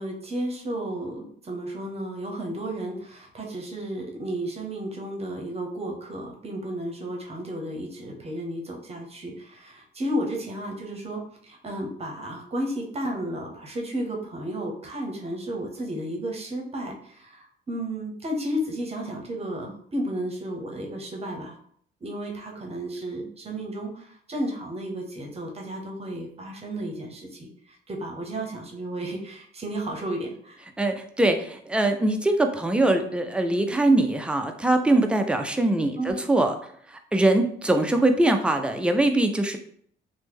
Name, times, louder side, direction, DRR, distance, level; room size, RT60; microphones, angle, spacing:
voice 1, 0.0-21.6 22.0-30.6 36.0-36.1, right 1 dB, 30° right, 0 dB, 0.8 m, -33 dB
voice 2, 30.8-36.5 36.9-39.6, right 2 dB, 5° right, 5 dB, 0.4 m, -22 dB
3.0 x 2.1 x 3.4 m, 0.62 s
cardioid pair, 90°, 20 cm